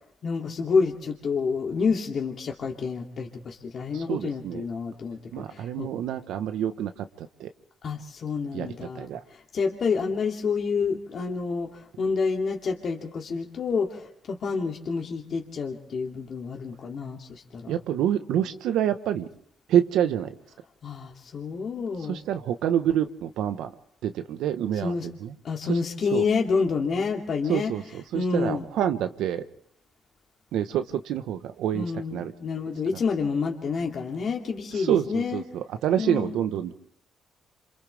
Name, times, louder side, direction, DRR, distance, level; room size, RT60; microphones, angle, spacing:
voice 1, 0.2-5.9 7.8-17.7 20.8-22.2 24.8-25.1 25.4-27.7 28.1-28.7 31.7-35.4 36.0-36.5, left 5 dB, 55° left, 1 dB, 2.7 m, -28 dB
voice 2, 3.9-4.6 5.3-6.9 7.2-7.5 8.5-9.2 17.7-19.3 19.7-20.3 22.0-23.7 24.0-25.3 25.7-25.8 26.1-26.2 27.5-29.4 30.5-31.9 32.1-32.3 34.7-36.7, right 10 dB, 85° right, 9 dB, 1.2 m, -27 dB
27.5 x 27.5 x 3.5 m, 0.72 s
cardioid pair, 90°, 0 cm